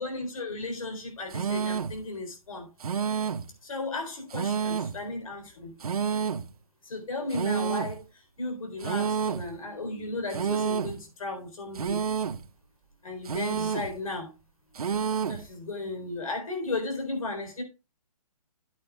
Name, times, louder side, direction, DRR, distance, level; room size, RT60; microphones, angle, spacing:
voice 1, 0.0-2.7 3.6-5.8 6.8-12.0 13.0-14.3 14.9-17.6, left 2 dB, 70° left, 4.2 m, -35 dB
sound 1, 1.3-2.0 2.8-3.5 4.3-5.0 5.8-6.5 7.3-8.0 8.8-9.5 10.3-11.0 11.8-12.5 13.3-14.0 14.8-15.5, right 6 dB, 80° right, 0.8 m, -29 dB
13.0 x 8.7 x 2.4 m
hypercardioid pair, 160°, 19 cm